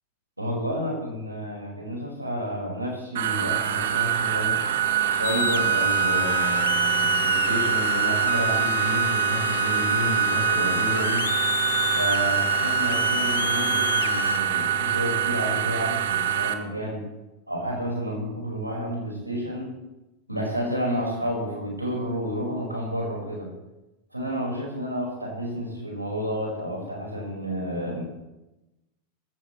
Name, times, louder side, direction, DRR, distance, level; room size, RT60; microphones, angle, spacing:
voice 1, 0.4-4.6 5.1-11.2 11.9-17.1 17.5-19.7 20.3-23.5 24.1-28.0, equal, 85° right, -2 dB, 5.0 m, -30 dB
sound 1, 3.1-16.5, right 9 dB, 60° right, 1.1 m, -24 dB
sound 2, 5.2-14.4, left 7 dB, 65° left, 0.6 m, -29 dB
20.0 x 14.0 x 3.2 m, 0.98 s
figure-of-eight pair, 90°, 0 cm